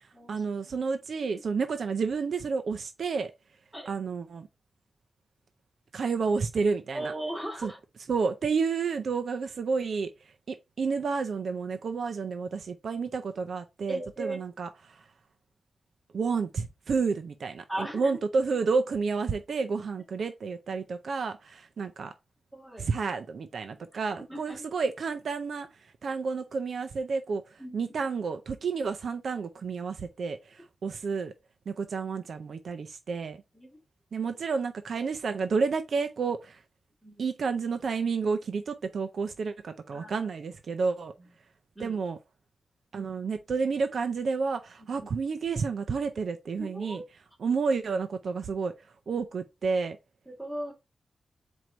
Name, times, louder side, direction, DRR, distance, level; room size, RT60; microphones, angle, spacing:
voice 1, 0.3-3.3 3.9-4.5 5.9-7.1 7.6-7.7 8.1-15.0 16.1-22.1 22.8-25.7 26.0-31.3 31.7-33.4 34.1-36.6 37.2-41.1 41.8-42.2 42.9-47.0 47.4-48.7 49.1-50.0, right 5 dB, 70° right, 0.5 m, -30 dB
voice 2, 6.9-7.8 13.9-14.4 17.7-18.2 22.5-22.8 24.3-24.6 27.6-27.8 33.5-33.8 37.0-37.2 39.9-40.1 41.2-41.3 41.8-42.0 44.8-45.1 46.6-47.0 50.3-50.7, right 1 dB, 5° right, 1.9 m, -37 dB
4.6 x 2.6 x 4.3 m
wide cardioid pair, 155°, 0 cm